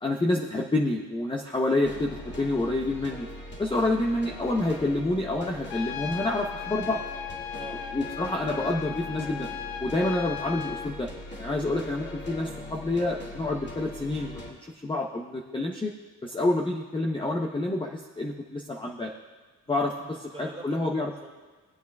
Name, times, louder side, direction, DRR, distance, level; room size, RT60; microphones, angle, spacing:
voice 1, 0.0-3.3 3.6-7.0 7.9-9.5 9.8-11.1 11.4-14.4 14.8-15.9 16.2-19.1 19.7-19.9 20.4-21.1, left 2 dB, 15° left, -1 dB, 0.8 m, -28 dB
sound 1, 1.8-14.5, left 1 dB, 30° left, 2.2 m, -41 dB
Trumpet, 5.7-10.9, left 9 dB, 80° left, 0.7 m, -37 dB
voice 2, 7.5-8.3 19.7-21.3, right 2 dB, 15° right, -2 dB, 2.5 m, -46 dB
19.0 x 8.1 x 2.3 m, 1.3 s
cardioid pair, 85°, 36 cm